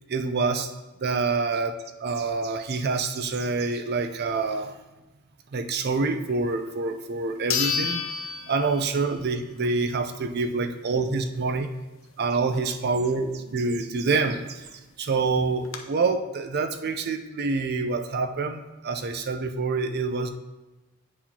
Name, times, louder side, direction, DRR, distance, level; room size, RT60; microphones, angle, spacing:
voice 1, 0.1-0.7 1.0-4.8 5.5-8.0 8.5-11.7 12.2-20.3, right 4 dB, 50° right, 8 dB, 0.5 m, -27 dB
sound 1, 6.7-6.8 7.5-9.3 9.6-9.7 14.4-14.5 14.7-14.8 15.3-15.8, left 6 dB, 75° left, 0.7 m, -30 dB
9.1 x 4.6 x 2.8 m, 1.1 s
head